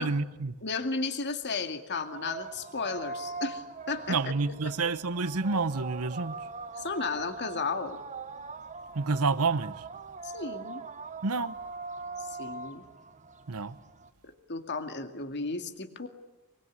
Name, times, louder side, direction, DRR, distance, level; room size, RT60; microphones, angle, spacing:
voice 1, 0.0-0.6 4.1-6.4 8.9-9.9 11.2-11.6 13.5-13.8, right 4 dB, 75° right, 1.0 m, -29 dB
voice 2, 0.6-4.3 6.8-8.0 10.2-10.8 12.2-12.8 14.2-16.1, left 4 dB, 50° left, 2.3 m, -34 dB
sound 1, 2.0-14.1, right 4 dB, 35° right, 1.1 m, -41 dB
24.5 x 23.5 x 9.7 m
head